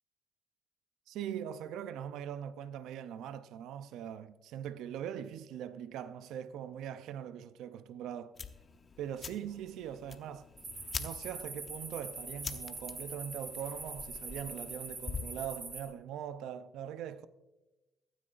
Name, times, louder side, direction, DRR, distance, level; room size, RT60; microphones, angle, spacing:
voice 1, 1.1-8.3 9.0-10.5 11.0-17.3, right 9 dB, 90° right, 0.5 m, -41 dB
sound 1, 8.4-15.5, left 5 dB, 40° left, 0.9 m, -46 dB
sound 2, 10.6-15.8, right 2 dB, 40° right, 4.7 m, -44 dB
22.5 x 9.8 x 2.5 m
cardioid pair, 90°, 0 cm